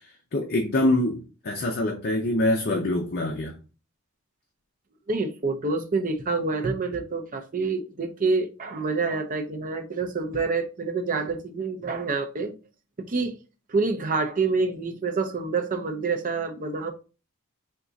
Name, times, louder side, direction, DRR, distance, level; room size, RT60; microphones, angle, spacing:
voice 1, 0.3-3.6, left 1 dB, 45° left, 0.5 m, -25 dB
voice 2, 5.1-12.5 13.0-13.4 13.7-16.9, right 4 dB, 40° right, 0.5 m, -27 dB
3.6 x 2.4 x 3.9 m
head